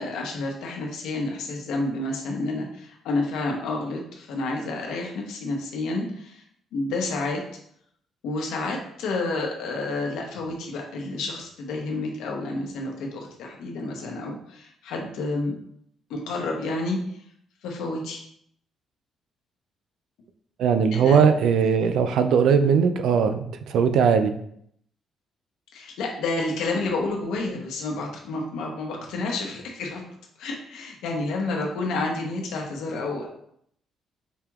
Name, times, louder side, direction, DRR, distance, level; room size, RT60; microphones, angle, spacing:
voice 1, 0.0-6.4 6.7-7.4 8.2-15.5 16.1-17.0 17.6-18.2 20.9-21.2 25.7-30.0 30.4-33.3, left 2 dB, 85° left, 1 dB, 0.8 m, -30 dB
voice 2, 20.6-24.3, right 6 dB, 75° right, 9 dB, 0.3 m, -19 dB
4.9 x 2.8 x 2.3 m, 0.69 s
cardioid pair, 90°, 0 cm